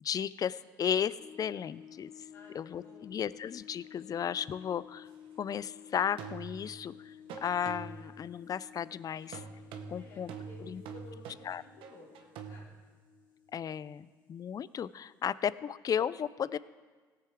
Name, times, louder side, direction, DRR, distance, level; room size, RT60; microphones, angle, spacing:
voice 1, 0.0-2.1 2.5-5.1 5.4-7.1 7.4-9.4 9.9-10.3 10.7-10.8 11.5-11.6 13.5-16.6, left 8 dB, 40° left, 18 dB, 0.4 m, -34 dB
sound 1, 1.2-15.4, left 9 dB, 60° left, 2.7 m, -54 dB
voice 2, 2.3-3.2 9.9-12.7, left 2 dB, 80° left, -6 dB, 3.4 m, -55 dB
sound 2, 4.4-4.5 6.2-6.9 7.3-8.2 9.3-12.7, right 6 dB, 70° right, 0.9 m, -45 dB
17.5 x 7.7 x 3.6 m, 1.5 s
hypercardioid pair, 55°, 9 cm